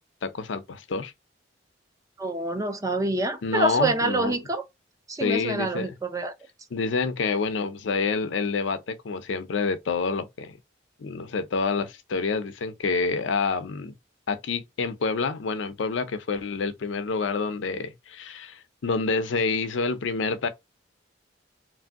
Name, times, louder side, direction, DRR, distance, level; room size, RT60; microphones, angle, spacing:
voice 1, 0.2-1.1 3.4-4.3 5.2-5.9 6.7-10.5 11.0-13.9 14.3-20.5, left 4 dB, 80° left, 0.5 m, -28 dB
voice 2, 2.2-4.6 5.1-6.3, right 2 dB, 20° right, 0.4 m, -26 dB
3.2 x 2.6 x 2.3 m
head